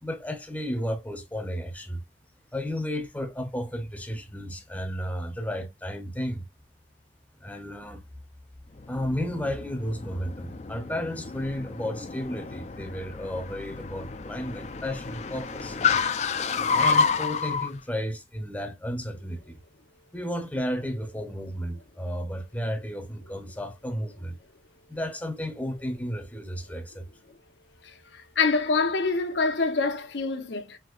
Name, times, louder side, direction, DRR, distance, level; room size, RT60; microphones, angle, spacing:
voice 1, 0.0-2.0 2.5-6.5 7.4-8.0 8.9-15.8 16.7-19.6 20.1-24.4 24.9-27.1, equal, 10° left, 0.7 m, -33 dB
Car, 8.8-17.7, left 5 dB, 40° left, 0.4 m, -29 dB
voice 2, 28.1-30.8, left 4 dB, 80° left, 0.8 m, -26 dB
6.1 x 2.8 x 2.4 m
head